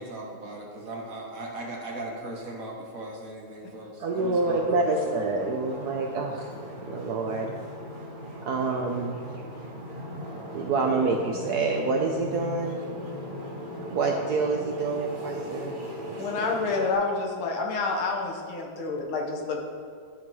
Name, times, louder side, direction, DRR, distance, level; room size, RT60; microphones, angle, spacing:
voice 1, 0.0-4.8, right 1 dB, 50° right, -1 dB, 1.2 m, -38 dB
voice 2, 4.0-6.5 6.9-7.5 8.4-9.2 10.5-12.8 13.9-15.7 16.1-16.2, right 3 dB, 70° right, 2 dB, 0.9 m, -27 dB
sound 1, 4.2-16.9, left 1 dB, 35° right, 1.0 m, -38 dB
voice 3, 16.2-19.6, left 4 dB, 80° left, 0 dB, 1.9 m, -28 dB
13.5 x 5.7 x 3.0 m, 2.2 s
omnidirectional pair, 2.2 m